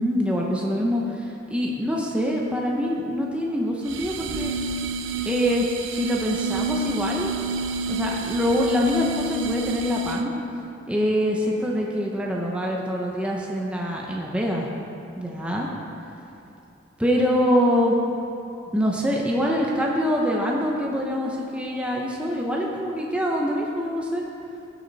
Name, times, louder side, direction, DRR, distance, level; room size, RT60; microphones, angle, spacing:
voice 1, 0.0-4.5 5.3-7.3 7.9-10.3 10.9-14.7 15.2-15.7 17.0-18.0 18.7-24.2, equal, 5° right, -2 dB, 0.8 m, -24 dB
sound 1, 3.9-10.4, right 2 dB, 75° right, 0.6 m, -29 dB
15.5 x 7.2 x 4.1 m, 2.8 s
head